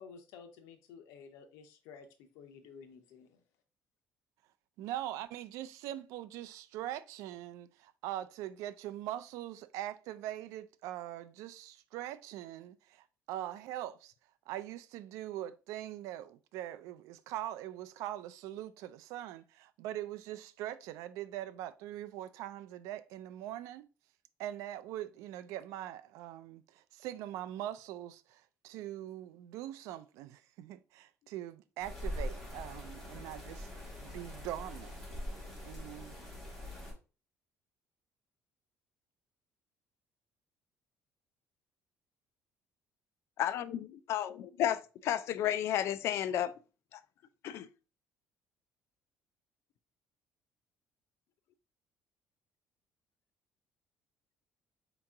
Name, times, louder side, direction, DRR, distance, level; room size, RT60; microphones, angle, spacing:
voice 1, 0.0-3.4, left 6 dB, 90° left, 0.8 m, -53 dB
voice 2, 4.8-14.1 14.5-23.9 24.4-33.7 34.0-34.9 35.6-36.1, right 13 dB, 85° right, 0.4 m, -42 dB
sound 1, 31.8-36.9, left 1 dB, 5° left, 2.0 m, -42 dB
voice 3, 43.4-46.5 46.9-47.0 47.4-47.7, left 11 dB, 60° left, 0.4 m, -32 dB
4.4 x 2.9 x 3.6 m
cardioid pair, 135°, 5 cm